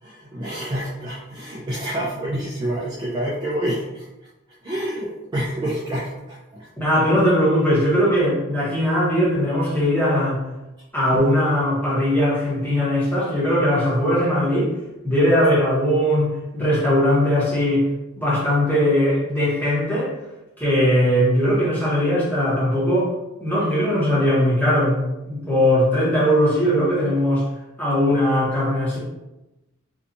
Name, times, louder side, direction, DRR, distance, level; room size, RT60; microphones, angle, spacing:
voice 1, 0.0-4.1 4.6-6.7 11.1-11.3, right 1 dB, 20° right, -7 dB, 0.3 m, -28 dB
voice 2, 6.8-10.4 10.9-14.7 15.0-17.9 18.2-20.1 20.6-23.1 23.4-27.4 27.8-29.0, equal, 10° left, -8 dB, 0.9 m, -19 dB
2.6 x 2.3 x 2.5 m, 0.98 s
head